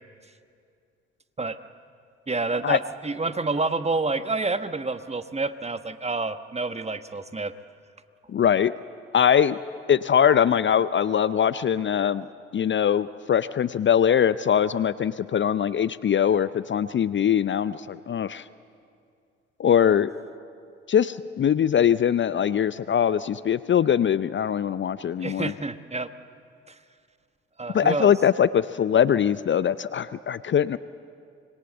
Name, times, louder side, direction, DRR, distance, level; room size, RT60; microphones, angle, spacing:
voice 1, 2.3-7.5 25.2-26.1 26.7-26.8 27.6-28.1, right 3 dB, 20° right, 11 dB, 1.3 m, -28 dB
voice 2, 8.3-8.7 9.1-9.6 9.9-12.3 12.5-18.4 19.6-20.1 20.9-25.5 27.7-30.8, left 8 dB, 35° left, 16 dB, 0.6 m, -22 dB
26.0 x 22.0 x 8.0 m, 2.4 s
figure-of-eight pair, 40°, 32 cm